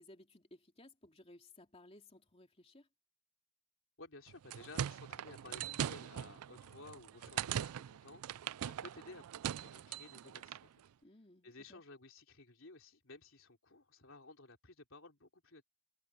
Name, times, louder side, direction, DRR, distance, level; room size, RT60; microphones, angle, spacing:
voice 1, 0.0-2.9 11.0-11.8, left 1 dB, 25° left, 3.0 m, -59 dB
voice 2, 4.0-9.3 9.6-10.7 11.4-15.6, left 3 dB, 60° left, 3.7 m, -55 dB
sound 1, 4.3-10.7, right 10 dB, 80° right, 0.4 m, -41 dB
head